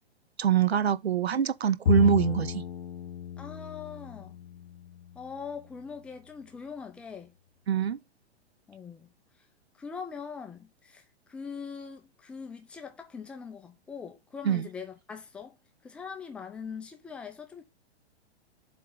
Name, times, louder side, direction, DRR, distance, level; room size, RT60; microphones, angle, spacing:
voice 1, 0.4-2.6 7.7-8.0 14.4-14.7, right 8 dB, 70° right, 0.7 m, -24 dB
Bowed string instrument, 1.9-5.3, left 9 dB, 65° left, 0.7 m, -32 dB
voice 2, 3.4-4.3 5.1-7.4 8.7-9.1 9.8-11.0 11.3-15.6 15.8-17.6, left 6 dB, 5° left, 0.4 m, -42 dB
7.6 x 3.4 x 4.6 m
figure-of-eight pair, 110°, 33 cm